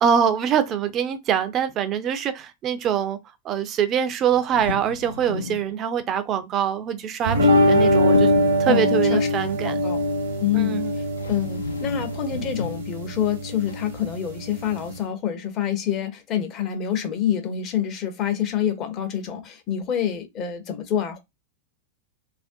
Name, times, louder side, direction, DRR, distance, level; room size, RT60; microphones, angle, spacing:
voice 1, 0.0-3.2 3.4-8.3 8.6-9.8 10.5-10.9, right 8 dB, 30° right, 0.4 m, -24 dB
sound 1, 4.3-5.7 7.2-7.8 8.1-8.6 10.7-10.8 11.2-12.8 13.7-14.0, left 4 dB, 75° left, 0.3 m, -35 dB
sound 2, 7.2-15.0, left 1 dB, 70° right, 0.7 m, -22 dB
voice 2, 8.7-9.3 9.6-10.0 10.4-21.2, left 9 dB, 35° left, 0.6 m, -27 dB
2.5 x 2.0 x 2.5 m
figure-of-eight pair, 90°, 0 cm